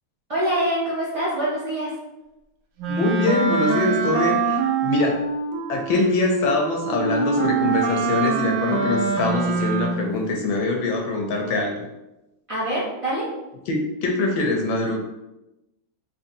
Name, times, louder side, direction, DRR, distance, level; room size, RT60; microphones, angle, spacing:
voice 1, 0.3-1.9 12.5-13.3, right 1 dB, 40° right, -10 dB, 0.4 m, -25 dB
voice 2, 2.8-5.3 5.7-11.9 13.7-15.0, left 3 dB, 75° left, 1 dB, 1.3 m, -23 dB
Wind instrument woodwind instrument, 2.8-10.2, right 4 dB, 70° right, 1.2 m, -24 dB
4.3 x 3.1 x 2.6 m, 0.97 s
omnidirectional pair, 2.3 m